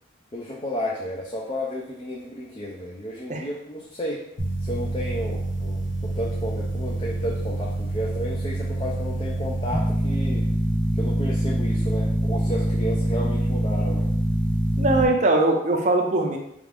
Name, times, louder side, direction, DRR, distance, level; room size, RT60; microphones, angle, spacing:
voice 1, 0.3-4.2 4.6-10.5 10.9-14.1, equal, 25° left, -3 dB, 0.4 m, -32 dB
sound 1, 4.4-15.0, right 1 dB, 85° left, 1.1 m, -25 dB
voice 2, 14.8-16.4, right 2 dB, 40° right, 2 dB, 0.5 m, -21 dB
4.3 x 2.4 x 3.4 m, 0.77 s
head